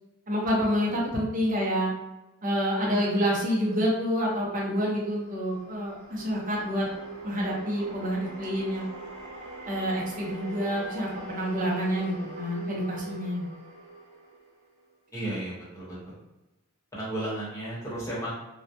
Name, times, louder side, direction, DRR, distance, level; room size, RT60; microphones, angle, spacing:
voice 1, 0.3-1.9 2.4-6.9 7.2-8.9 9.7-13.5, equal, 40° right, -3 dB, 0.7 m, -28 dB
sound 1, 4.6-14.9, right 2 dB, 80° right, 0.8 m, -43 dB
voice 2, 15.1-16.2 16.9-18.3, right 1 dB, 15° left, -8 dB, 0.9 m, -34 dB
2.2 x 2.1 x 2.7 m, 1.0 s
head